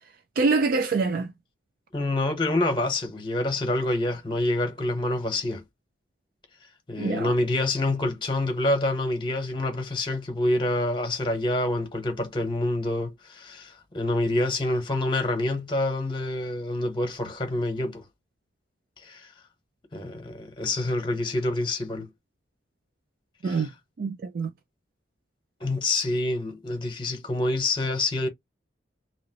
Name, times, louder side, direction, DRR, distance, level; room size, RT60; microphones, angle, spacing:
voice 1, 0.4-1.3 7.0-7.3 23.4-23.7 24.0-24.5, right 4 dB, 50° right, 0.3 m, -25 dB
voice 2, 1.9-5.6 6.9-18.0 19.0-19.3 19.9-22.1 23.4-23.7 25.6-28.3, left 2 dB, 25° left, 1.0 m, -27 dB
3.0 x 2.7 x 2.8 m
head